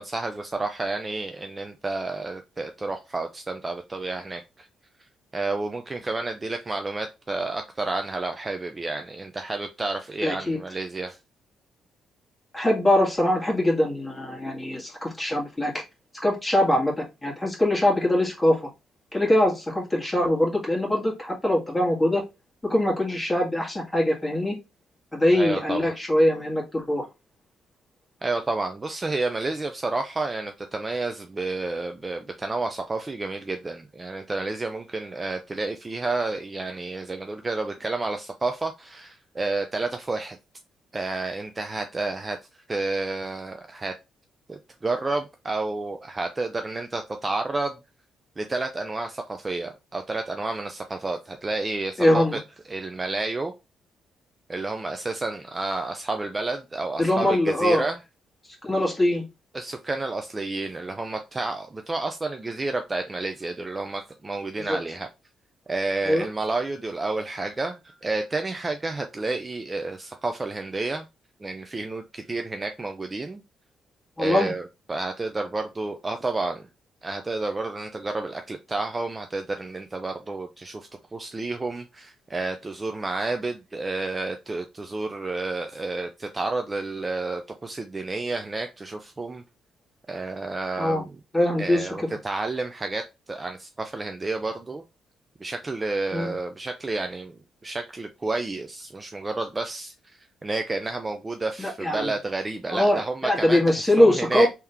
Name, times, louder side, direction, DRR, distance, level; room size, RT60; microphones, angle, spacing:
voice 1, 0.0-4.7 5.3-11.2 25.3-25.9 28.2-40.4 40.9-42.4 42.7-43.9 44.5-47.8 48.4-52.4 52.7-53.5 54.5-58.0 59.5-65.1 65.7-71.1 71.4-73.4 74.2-76.7 77.0-89.4 90.1-91.2 91.6-93.0 93.3-94.8 95.4-99.9 100.4-104.5, right 3 dB, 25° right, 0.5 m, -30 dB
voice 2, 10.2-10.6 12.5-15.8 16.2-18.6 19.1-22.2 22.7-24.6 25.1-27.1 52.0-52.4 57.0-57.9 58.6-59.2 64.6-64.8 66.1-66.3 74.2-74.5 90.8-91.0 91.3-91.9 96.1-96.3 101.6-102.1 102.7-104.5, left 1 dB, 10° left, 1.8 m, -22 dB
3.5 x 2.9 x 3.4 m
cardioid pair, 90°, 0 cm